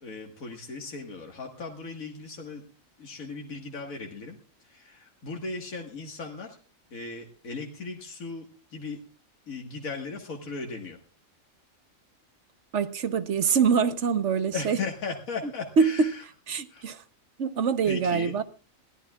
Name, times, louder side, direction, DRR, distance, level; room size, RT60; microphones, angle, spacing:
voice 1, 0.0-2.6 3.0-4.4 4.7-6.6 6.9-8.5 8.7-9.0 9.5-11.0 14.5-16.2 16.7-16.9 17.8-18.3, left 4 dB, 85° left, 2.1 m, -37 dB
voice 2, 12.7-14.8 15.8-16.1 16.5-17.0 17.4-18.4, right 6 dB, 60° right, 1.2 m, -24 dB
22.0 x 15.5 x 2.4 m
omnidirectional pair, 1.4 m